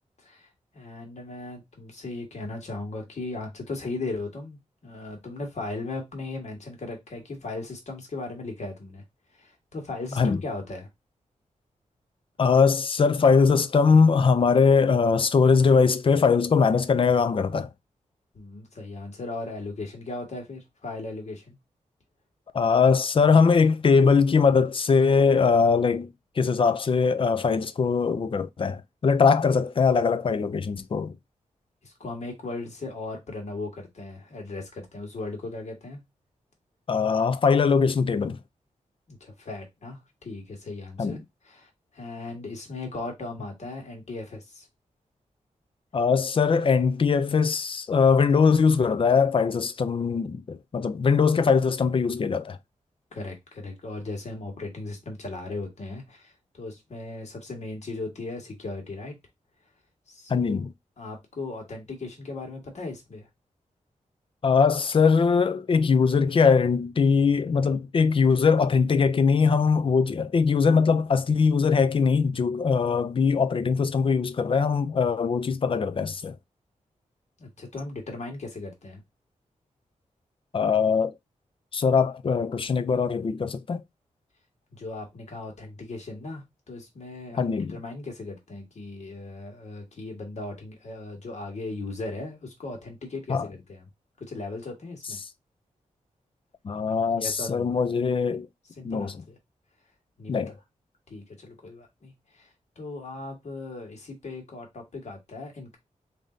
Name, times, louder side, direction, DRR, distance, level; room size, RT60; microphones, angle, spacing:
voice 1, 0.7-9.0 9.3-10.9 18.3-21.6 31.8-36.0 39.1-41.2 41.4-44.7 53.1-59.1 60.1-60.7 61.0-63.3 77.4-79.0 84.7-93.9 94.2-95.2 97.2-97.7 98.8-99.4 100.2-100.5 101.1-102.5 102.7-105.8, left 2 dB, 55° left, 1.6 m, -37 dB
voice 2, 12.4-17.7 22.5-26.1 26.4-31.1 36.9-38.4 41.0-41.2 45.9-52.6 60.3-60.7 64.4-76.3 80.5-81.1 81.7-83.8 87.4-87.8 93.3-93.5 96.6-98.5 98.8-99.1 100.3-100.5, left 5 dB, 40° left, 0.4 m, -21 dB
3.6 x 2.7 x 3.7 m
wide cardioid pair, 125°, 13 cm